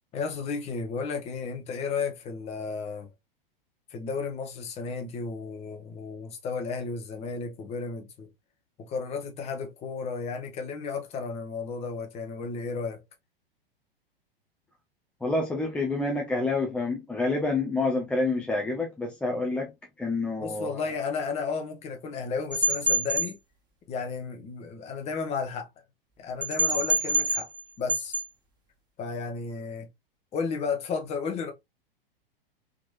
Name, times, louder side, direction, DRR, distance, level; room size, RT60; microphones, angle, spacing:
voice 1, 0.1-3.1 3.9-8.3 8.8-13.0 20.4-23.4 23.9-25.7 26.2-27.5 27.8-28.2 29.0-29.9 30.3-31.5, left 5 dB, 20° left, 0.9 m, -33 dB
voice 2, 15.2-19.7 20.0-20.9, left 3 dB, 5° left, 0.4 m, -28 dB
sound 1, 22.5-23.3 26.4-27.6 27.9-28.2, right 1 dB, 15° right, 1.2 m, -26 dB
3.6 x 3.0 x 2.4 m
figure-of-eight pair, 100°, 29 cm